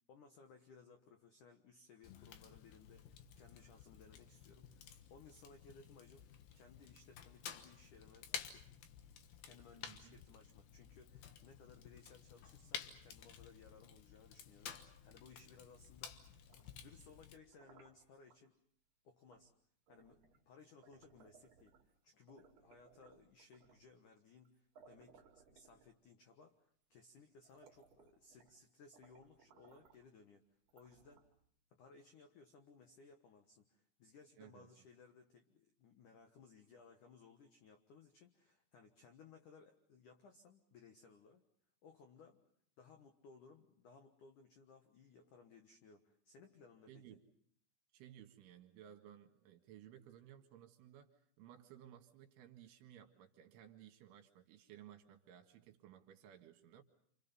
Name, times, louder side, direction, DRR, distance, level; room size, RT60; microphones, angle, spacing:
voice 1, 0.1-8.7 9.4-16.2 16.5-18.6 19.0-19.5 19.9-30.4 30.7-31.2 31.7-41.4 41.8-42.4 42.8-47.2, left 4 dB, 85° left, 5 dB, 1.7 m, -62 dB
Fire, 2.0-17.4, left 8 dB, 65° left, 2.4 m, -53 dB
voice 2, 9.8-10.2 34.4-34.7 46.9-47.3 47.9-56.8, right 10 dB, 75° right, 5 dB, 4.1 m, -58 dB
sound 1, 16.3-18.4 19.3-19.5 19.9-21.9 22.3-23.9 24.4-24.5 24.7-26.2 26.9-27.0 27.3-28.6 28.9-30.1 30.7-31.5, right 6 dB, 50° right, 3.7 m, -66 dB
28.5 x 28.0 x 5.5 m, 0.64 s
omnidirectional pair, 5.9 m